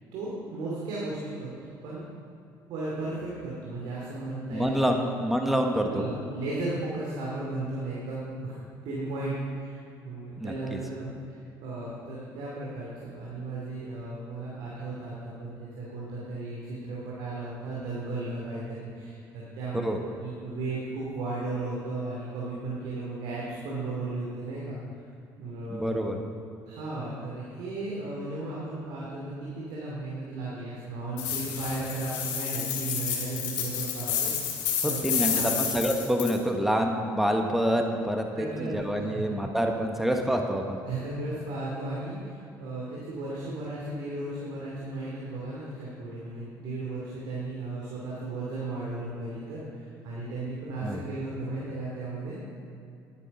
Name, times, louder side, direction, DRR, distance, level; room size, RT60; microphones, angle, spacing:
voice 1, 0.1-2.0 2.7-5.0 5.8-8.6 8.8-9.8 10.0-19.9 20.2-25.0 25.4-26.0 26.7-35.5 38.3-39.3 40.8-52.4, right 2 dB, 75° right, -5 dB, 2.8 m, -35 dB
voice 2, 4.5-5.9 10.4-10.8 19.8-20.0 25.7-26.2 34.8-40.8 50.8-51.0, equal, 5° right, 3 dB, 1.3 m, -27 dB
sound 1, 31.2-36.3, left 8 dB, 85° left, 2.6 m, -30 dB
11.5 x 10.0 x 5.4 m, 2.7 s
cardioid pair, 100°, 8 cm